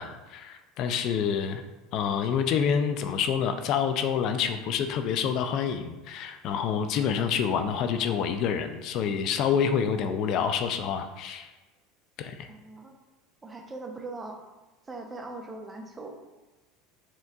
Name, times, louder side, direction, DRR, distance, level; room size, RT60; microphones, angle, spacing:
voice 1, 0.0-1.6 1.9-11.5 12.2-12.5, left 7 dB, 55° left, 8 dB, 0.3 m, -27 dB
voice 2, 12.5-13.0 13.4-14.4 14.8-16.2, right 2 dB, 20° right, 4 dB, 0.6 m, -40 dB
4.4 x 3.7 x 2.3 m, 1.2 s
supercardioid pair, 100°, 0 cm